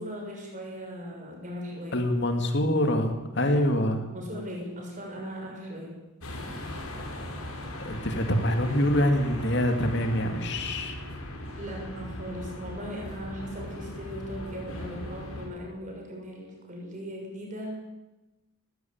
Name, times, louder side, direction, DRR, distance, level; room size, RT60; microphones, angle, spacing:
voice 1, 0.0-2.0 3.5-6.0 11.6-17.7, equal, 35° right, 0 dB, 6.7 m, -38 dB
voice 2, 1.9-4.0 7.8-11.0, left 1 dB, 55° left, 6 dB, 2.5 m, -25 dB
sound 1, 6.2-15.5, left 1 dB, 90° left, 5.1 m, -38 dB
19.5 x 15.5 x 8.9 m, 1.1 s
head